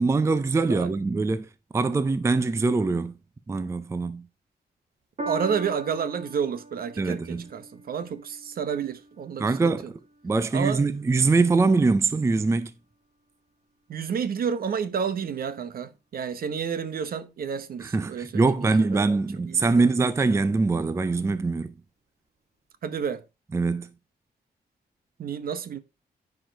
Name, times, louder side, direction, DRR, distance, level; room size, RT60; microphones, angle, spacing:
voice 1, 0.0-3.1 3.5-4.3 7.0-7.5 9.4-12.7 17.8-21.8 23.5-23.9, right 3 dB, 15° right, 0.5 m, -23 dB
Piano, 5.2-11.8 12.6-12.7, right 1 dB, 40° right, 3.0 m, -41 dB
voice 2, 5.3-9.7 10.5-10.8 13.9-18.7 18.9-19.0 19.5-19.8 22.8-23.2 25.2-25.8, right 7 dB, 60° right, 0.9 m, -30 dB
10.0 x 5.0 x 4.5 m
wide cardioid pair, 170°, 17 cm